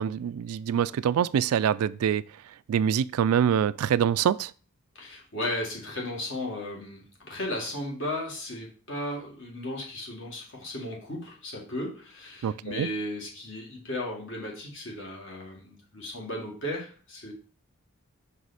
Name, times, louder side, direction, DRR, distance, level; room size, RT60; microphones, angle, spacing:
voice 1, 0.0-2.2 2.7-4.5 12.4-12.9, right 8 dB, 80° right, 0.3 m, -25 dB
voice 2, 5.0-17.3, left 1 dB, 55° left, 1.9 m, -35 dB
5.7 x 4.7 x 4.1 m
head